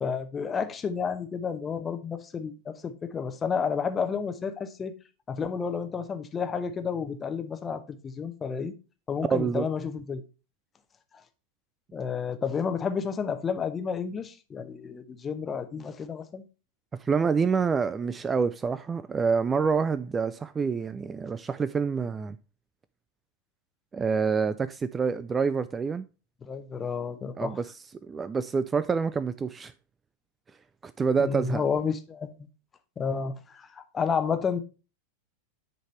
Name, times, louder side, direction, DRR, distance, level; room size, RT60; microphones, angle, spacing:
voice 1, 0.0-4.9 5.3-8.7 9.1-10.2 11.9-16.4 26.4-27.6 31.2-32.3 33.0-34.6, left 6 dB, 20° left, 0.8 m, -31 dB
voice 2, 9.3-9.7 16.9-22.4 23.9-26.1 27.4-27.7 28.0-29.7 30.8-31.6, right 5 dB, 15° right, 0.3 m, -27 dB
10.0 x 4.0 x 3.1 m
figure-of-eight pair, 90°, 0 cm